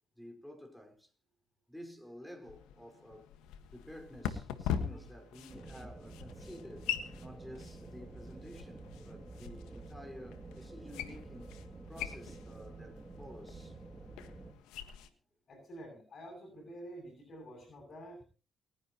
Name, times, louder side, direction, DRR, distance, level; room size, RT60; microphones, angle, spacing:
voice 1, 0.2-1.1 1.7-3.4 3.7-6.9 7.2-13.8, equal, 5° left, 4.9 m, -51 dB
sound 1, 2.4-15.1, left 9 dB, 85° left, 1.5 m, -43 dB
sound 2, 5.5-14.5, right 2 dB, 25° right, 2.6 m, -49 dB
voice 2, 15.5-18.2, right 1 dB, 55° left, 7.5 m, -49 dB
28.5 x 10.5 x 3.0 m
supercardioid pair, 60°, 0 cm